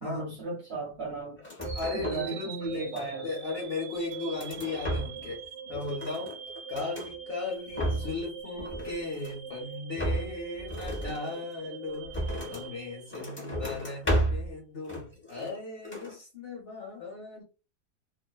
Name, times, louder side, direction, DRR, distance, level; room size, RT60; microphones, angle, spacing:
voice 1, 0.0-1.4 1.9-3.3, right 3 dB, 55° right, 0.8 m, -36 dB
sound 1, 1.4-2.4 2.6-3.4 3.9-5.4 5.7-7.1 7.5-8.2 8.5-9.5 9.9-12.7 13.1-14.5 14.8-15.6 15.8-16.2, equal, 15° left, 0.3 m, -34 dB
sound 2, 1.6-13.8, right 6 dB, 80° right, 1.1 m, -42 dB
voice 2, 1.7-6.3 6.7-12.2 12.5-17.4, left 3 dB, 50° left, 0.8 m, -37 dB
2.6 x 2.1 x 2.2 m
omnidirectional pair, 1.7 m